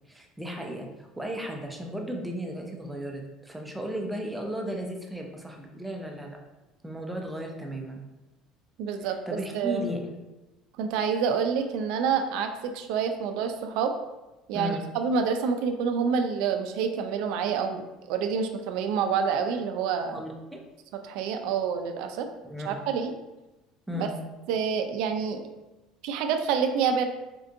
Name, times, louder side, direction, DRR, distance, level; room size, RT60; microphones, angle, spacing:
voice 1, 0.1-6.4 6.8-8.0 9.3-10.0 14.5-14.8 20.1-20.6 22.4-22.8 23.9-24.1, equal, 5° right, 1 dB, 0.5 m, -35 dB
voice 2, 8.8-9.2 9.5-9.9 10.8-13.9 14.5-17.8 18.1-20.2 21.0-22.3 22.7-23.1 23.9-24.1 24.5-25.4 26.0-27.0, right 6 dB, 75° right, 6 dB, 0.3 m, -27 dB
4.4 x 2.6 x 2.5 m, 1.0 s
cardioid pair, 125°, 0 cm